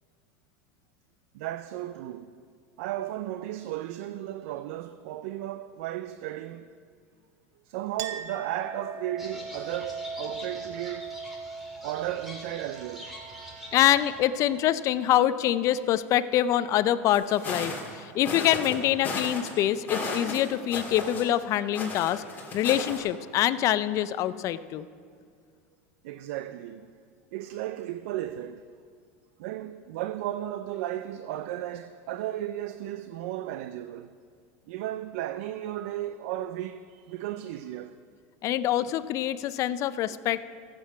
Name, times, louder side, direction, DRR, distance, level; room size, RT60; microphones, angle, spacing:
voice 1, 1.3-2.3 2.8-6.7 7.6-11.2 11.8-14.0 26.0-26.9 27.3-28.7 29.4-34.1 34.7-38.0, right 13 dB, 70° right, 0.4 m, -35 dB
Chink clink, 8.0-15.0, right 5 dB, 50° right, 0.8 m, -41 dB
sound 1, 9.2-14.3, left 1 dB, 5° right, 3.0 m, -45 dB
voice 2, 13.7-22.2 22.5-24.9 38.4-40.4, left 12 dB, 45° left, 0.5 m, -25 dB
sound 2, 17.1-17.9 18.2-18.8 19.0-19.5 19.9-21.4 21.7-23.0, left 3 dB, 25° left, 3.6 m, -34 dB
15.0 x 7.8 x 5.7 m
supercardioid pair, 115°, 8 cm